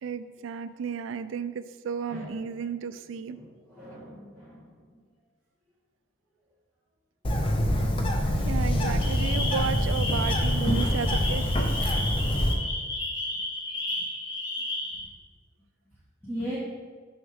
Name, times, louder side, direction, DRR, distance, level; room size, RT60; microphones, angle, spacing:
voice 1, 0.0-3.4 8.5-11.6, right 6 dB, 70° right, 13 dB, 0.3 m, -33 dB
voice 2, 3.7-4.7 16.2-16.6, equal, 10° left, -12 dB, 1.5 m, -37 dB
Bird, 7.2-12.5, equal, 25° left, 0.6 m, -25 dB
sound 1, 9.0-15.0, left 2 dB, 60° left, 1.2 m, -33 dB
6.4 x 6.4 x 3.5 m, 1.5 s
head